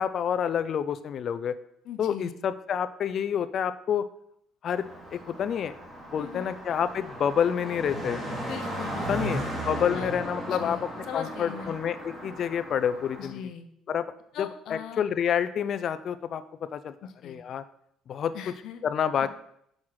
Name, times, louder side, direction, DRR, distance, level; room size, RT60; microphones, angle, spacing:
voice 1, 0.0-1.6 2.0-4.0 4.6-4.9 5.1-5.7 6.1-8.2 9.1-13.5 13.9-14.1 14.4-16.4 16.7-16.9 17.2-17.6 18.1-18.3 18.8-19.3, left 8 dB, 55° left, 13 dB, 0.5 m, -28 dB
voice 2, 1.8-2.3 6.2-6.6 8.5-9.3 9.7-10.1 10.5-11.8 13.2-13.6 14.3-15.0 17.0-17.4 18.3-18.8 19.2-19.3, left 8 dB, 70° left, 7 dB, 0.9 m, -39 dB
Car passing by, 4.7-13.3, right 1 dB, 20° right, 2.6 m, -36 dB
6.4 x 5.6 x 4.7 m, 0.73 s
cardioid pair, 100°, 0 cm